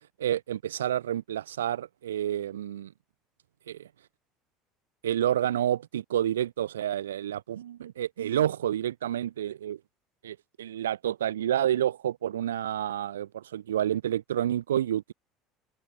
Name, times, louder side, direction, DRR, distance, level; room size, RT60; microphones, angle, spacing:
voice 1, 0.2-2.9 3.7-3.9 5.0-9.8 10.2-15.1, right 11 dB, 90° right, 4.6 m, -29 dB
hypercardioid pair, 75°, 0 cm